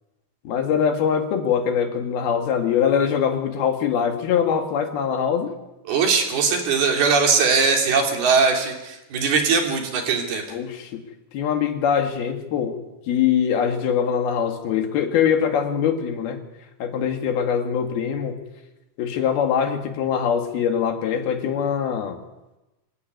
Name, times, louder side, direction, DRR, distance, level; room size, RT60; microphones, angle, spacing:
voice 1, 0.5-5.5 10.5-11.0 11.3-12.8 13.1-16.4 16.8-18.4 19.0-22.2, left 7 dB, 75° left, 5 dB, 3.8 m, -23 dB
voice 2, 5.9-10.4, right 5 dB, 75° right, 2 dB, 5.1 m, -20 dB
25.5 x 14.0 x 9.5 m, 1.0 s
omnidirectional pair, 4.5 m